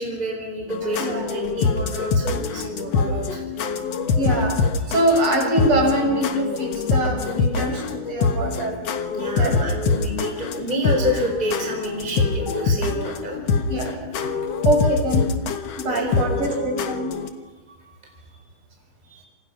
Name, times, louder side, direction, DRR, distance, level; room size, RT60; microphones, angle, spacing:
voice 1, 0.0-3.5 9.1-13.4 15.8-16.1 17.7-18.1 19.1-19.2, right 1 dB, 15° right, 1 dB, 4.5 m, -29 dB
sound 1, 0.7-17.3, left 4 dB, 60° left, 2.3 m, -24 dB
voice 2, 1.0-1.3 3.2-3.3 3.6-4.6 4.9-8.7 9.3-9.6 13.7-13.9 14.2-14.3 14.6-15.3 15.8-17.2, right 1 dB, 40° right, 1 dB, 7.1 m, -23 dB
28.0 x 28.0 x 5.9 m, 1.2 s
omnidirectional pair, 3.7 m